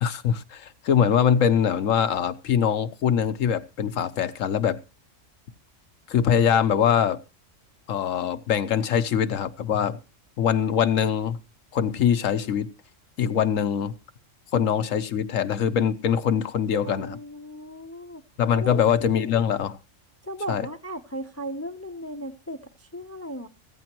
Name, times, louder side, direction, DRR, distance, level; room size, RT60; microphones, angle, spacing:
voice 1, 0.0-4.8 6.1-7.2 7.9-10.0 10.4-11.4 11.7-12.7 13.2-13.9 14.5-17.2 18.4-19.8 20.5-20.7, left 8 dB, 85° left, 11 dB, 1.2 m, -23 dB
voice 2, 16.8-18.2 18.5-18.8 20.2-23.5, equal, 15° left, 9 dB, 0.5 m, -36 dB
15.0 x 14.5 x 3.0 m, 0.31 s
omnidirectional pair, 1.3 m